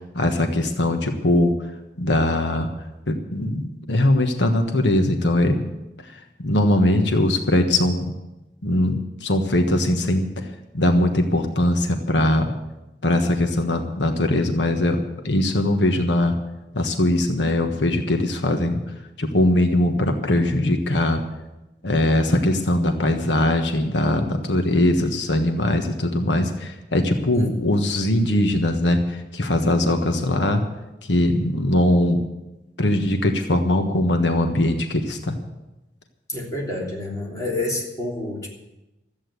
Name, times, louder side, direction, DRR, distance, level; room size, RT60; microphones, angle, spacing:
voice 1, 0.0-1.5 2.0-2.7 3.1-5.8 6.0-6.1 6.4-8.1 8.6-10.5 10.7-12.5 13.0-16.3 16.7-18.8 19.2-21.2 21.8-30.6 31.0-32.3 32.8-35.4, left 1 dB, 90° left, 5 dB, 1.4 m, -21 dB
voice 2, 27.3-27.7 36.3-38.5, left 2 dB, 20° left, -3 dB, 3.3 m, -29 dB
13.5 x 8.8 x 9.5 m, 0.98 s
head